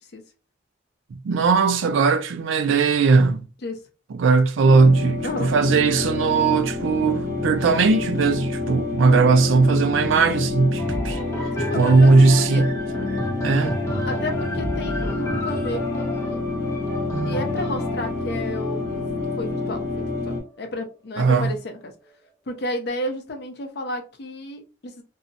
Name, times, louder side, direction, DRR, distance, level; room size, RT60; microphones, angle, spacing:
voice 1, 1.2-3.4 4.1-11.2 11.7-12.7 13.4-13.8 21.2-21.5, right 4 dB, 80° right, 0.4 m, -18 dB
sound 1, 4.6-20.4, left 3 dB, 35° right, 0.8 m, -28 dB
sound 2, 10.8-20.6 21.2-21.3, equal, 15° left, 0.7 m, -32 dB
voice 2, 11.5-12.6 14.1-16.4 17.2-18.8 19.4-21.9 22.5-25.0, left 1 dB, 55° left, 0.5 m, -32 dB
2.6 x 2.0 x 2.6 m
head